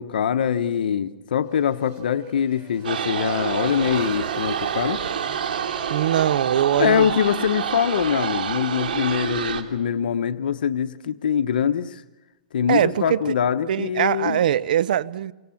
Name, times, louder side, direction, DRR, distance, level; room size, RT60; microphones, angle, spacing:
voice 1, 0.0-5.0 6.8-12.0 12.5-14.4, left 8 dB, 80° left, 1.1 m, -23 dB
Motorcycle, 1.5-7.8, right 6 dB, 30° right, 3.8 m, -44 dB
sound 1, 2.8-9.6, right 8 dB, 90° right, 3.1 m, -27 dB
voice 2, 5.9-7.1 12.7-13.3 13.7-15.3, right 10 dB, 70° right, 0.9 m, -22 dB
29.0 x 25.5 x 7.2 m
hypercardioid pair, 155°, 5 cm